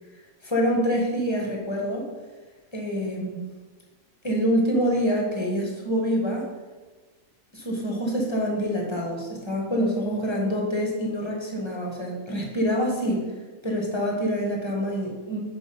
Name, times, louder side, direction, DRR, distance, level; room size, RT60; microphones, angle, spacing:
voice 1, 0.4-2.1 2.7-3.4 4.2-6.5 7.5-13.2 13.6-15.4, equal, 20° left, -1 dB, 1.2 m, -26 dB
6.2 x 4.9 x 5.2 m, 1.3 s
omnidirectional pair, 1.5 m